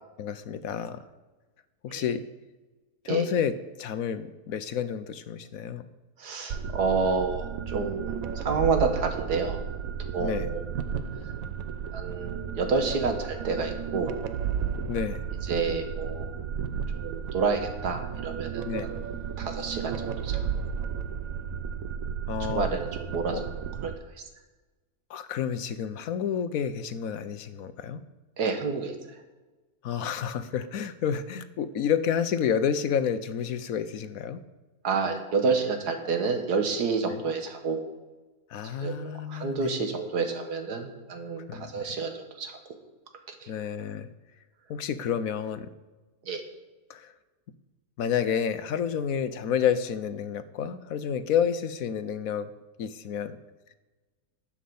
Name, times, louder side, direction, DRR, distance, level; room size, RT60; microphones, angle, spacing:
voice 1, 0.2-1.0 1.8-2.2 3.0-3.5 3.8-5.9 10.2-10.5 14.9-15.2 18.6-18.9 22.3-22.7 23.3-23.4 25.1-28.0 29.8-34.4 38.5-39.8 41.5-42.0 43.5-44.1 44.7-45.7 46.9-47.1 48.0-52.5 52.8-53.4, left 8 dB, 70° left, 12 dB, 1.1 m, -30 dB
voice 2, 6.2-9.6 10.1-10.6 11.9-14.1 15.5-16.3 16.9-19.0 19.4-20.7 22.5-23.4 23.8-23.9 28.4-29.0 34.8-37.8 38.7-42.6 43.3-43.5 46.3-46.4, right 4 dB, 85° right, 5 dB, 2.0 m, -29 dB
sound 1, 6.5-24.0, right 7 dB, 65° right, 1.1 m, -33 dB
11.5 x 7.4 x 7.0 m, 1.2 s
omnidirectional pair, 1.6 m